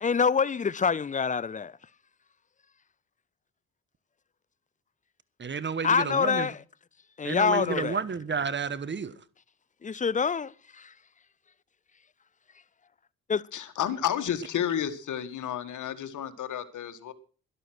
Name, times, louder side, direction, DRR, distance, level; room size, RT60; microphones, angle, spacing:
voice 1, 0.0-1.7 5.8-6.6 7.2-8.0 9.8-10.9 13.3-13.4, left 6 dB, 25° left, 0.6 m, -26 dB
voice 2, 5.4-6.5 7.2-9.1, right 5 dB, 35° right, 1.3 m, -31 dB
voice 3, 13.5-17.1, left 10 dB, 70° left, 1.7 m, -31 dB
12.5 x 11.0 x 6.2 m
supercardioid pair, 65°, 31 cm